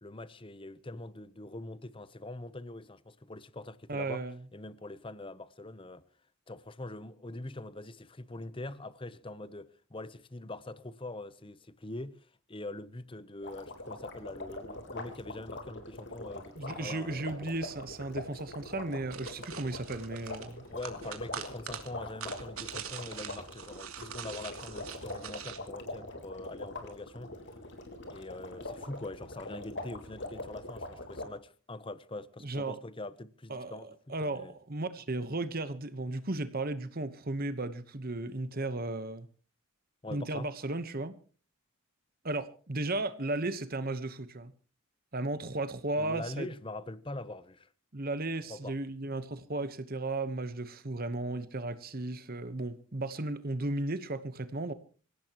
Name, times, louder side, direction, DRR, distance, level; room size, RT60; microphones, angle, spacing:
voice 1, 0.0-4.2 4.5-6.0 6.5-17.5 20.7-27.3 28.1-34.5 40.0-40.5 46.0-47.7 48.5-48.8, left 2 dB, 25° left, 0.8 m, -43 dB
voice 2, 3.9-4.4 16.6-20.6 32.4-32.8 33.5-33.8 34.1-39.3 40.1-41.1 42.2-44.5 45.1-46.5 47.9-54.7, right 2 dB, 45° right, 1.1 m, -35 dB
sound 1, 13.4-31.2, left 2 dB, 55° left, 3.6 m, -43 dB
sound 2, 19.1-25.6, right 8 dB, 75° right, 2.7 m, -43 dB
26.0 x 17.0 x 3.0 m
head